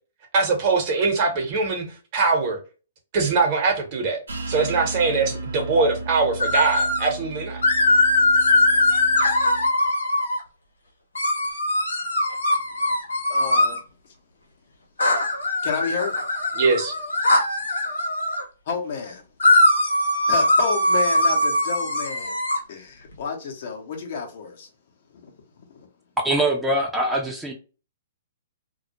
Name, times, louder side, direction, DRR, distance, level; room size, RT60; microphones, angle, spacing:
voice 1, 0.3-1.8 2.1-2.6 3.1-4.2 4.5-7.6 16.5-16.9, right 4 dB, 45° right, 0.9 m, -22 dB
sound 1, 4.3-9.7, right 2 dB, 80° right, 0.6 m, -35 dB
sound 2, 6.4-7.1 7.6-10.4 11.2-13.8 15.0-18.4 19.4-22.6, left 1 dB, 90° left, 0.8 m, -21 dB
voice 2, 13.3-13.8 15.6-16.1 18.7-19.2 20.2-22.4 22.7-24.7 25.2-25.3 25.7-25.9, left 6 dB, 60° left, 0.7 m, -30 dB
voice 3, 26.2-27.5, right 1 dB, 10° right, 0.5 m, -23 dB
2.2 x 2.0 x 2.8 m
hypercardioid pair, 130°, 0 cm